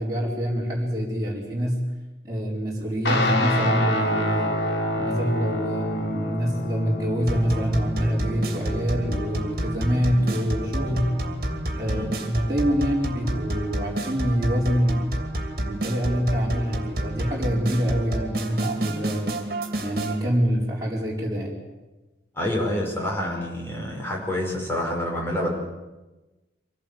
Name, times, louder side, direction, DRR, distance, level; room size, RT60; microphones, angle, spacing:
voice 1, 0.0-1.8 2.2-4.5 4.9-11.2 11.7-15.0 15.7-19.3 19.8-21.5, equal, 20° right, -5 dB, 4.6 m, -25 dB
Guitar, 3.1-11.8, left 1 dB, 70° left, 3.0 m, -28 dB
sound 1, 7.3-20.2, right 1 dB, 55° right, 2.8 m, -30 dB
voice 2, 22.3-25.5, left 1 dB, 15° left, -1 dB, 5.3 m, -27 dB
25.0 x 17.0 x 8.7 m, 1.1 s
head